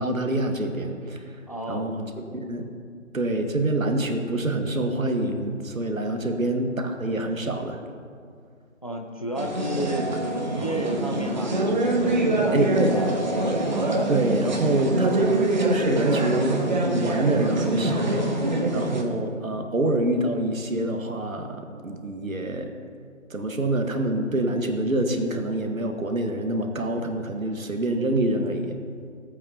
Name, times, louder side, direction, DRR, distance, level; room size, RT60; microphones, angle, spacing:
voice 1, 0.0-1.4 1.7-2.7 3.1-7.8 12.5-13.0 14.1-18.1 18.7-22.7 23.3-28.8, right 2 dB, 90° right, 5 dB, 1.4 m, -26 dB
voice 2, 1.5-1.9 6.2-6.3 8.8-11.6 11.8-13.1, right 1 dB, 30° left, 3 dB, 0.5 m, -32 dB
sound 1, 9.4-19.0, right 1 dB, 35° right, 1.0 m, -25 dB
16.0 x 8.5 x 2.8 m, 2.2 s
figure-of-eight pair, 160°, 40 cm